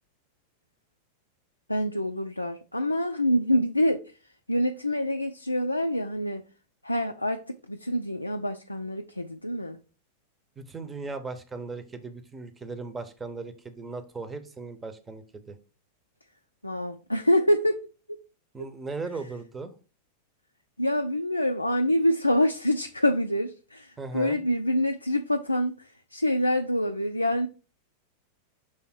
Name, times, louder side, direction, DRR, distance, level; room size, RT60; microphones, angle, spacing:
voice 1, 1.7-4.0 4.5-6.4 6.8-9.8 16.6-17.8 18.1-18.2 20.8-27.5, equal, 85° left, 0.4 m, -26 dB
voice 2, 10.6-15.6 18.5-19.7 24.0-24.4, right 3 dB, 15° right, 0.9 m, -37 dB
6.1 x 3.5 x 4.4 m
figure-of-eight pair, 90°, 0 cm